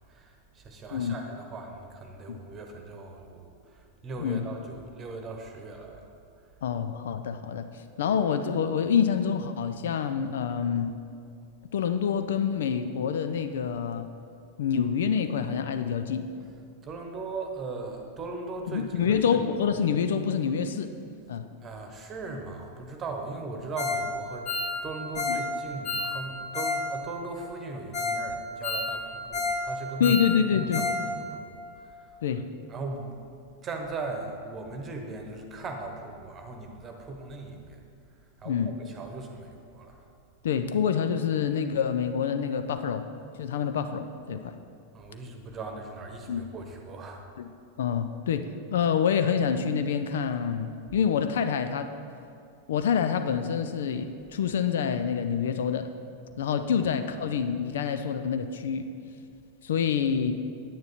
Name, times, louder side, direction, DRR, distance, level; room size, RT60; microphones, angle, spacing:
voice 1, 0.1-6.6 10.7-10.9 16.8-19.4 21.6-24.5 24.8-30.2 30.5-32.2 32.7-33.3 33.5-37.8 38.2-40.1 44.9-47.3 50.9-51.0 56.7-56.9, right 3 dB, 25° right, 3 dB, 1.2 m, -39 dB
voice 2, 6.6-7.7 8.0-10.9 11.7-14.1 14.6-16.2 18.7-20.9 21.3-21.4 25.3-25.4 30.0-30.9 32.2-32.5 38.5-38.7 40.4-43.1 43.4-44.5 46.3-46.4 47.4-47.5 47.8-51.9 52.7-55.9 56.4-58.9 59.6-60.4, left 7 dB, 60° left, 9 dB, 0.5 m, -27 dB
Ringtone, 23.8-24.1 24.3-26.8 27.1-27.2 27.6-27.7 27.9-28.2 28.5-29.6 29.9-31.0 31.3-31.4 31.8-31.9, left 3 dB, 35° left, 1.9 m, -30 dB
9.5 x 9.3 x 4.3 m, 2.3 s
figure-of-eight pair, 90°, 0 cm